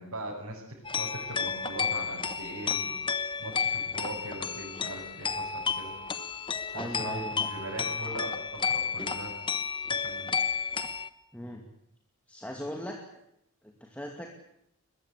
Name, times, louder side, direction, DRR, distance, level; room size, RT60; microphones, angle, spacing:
voice 1, 0.0-5.9 6.7-9.3 9.9-10.4, right 1 dB, 75° right, -4 dB, 7.3 m, -40 dB
sound 1, 0.8-11.1, left 6 dB, 20° left, 1.2 m, -32 dB
voice 2, 6.7-7.5 11.3-11.6 12.3-13.0 13.6-14.3, equal, 5° left, 1 dB, 2.5 m, -39 dB
23.0 x 22.0 x 8.4 m, 0.77 s
head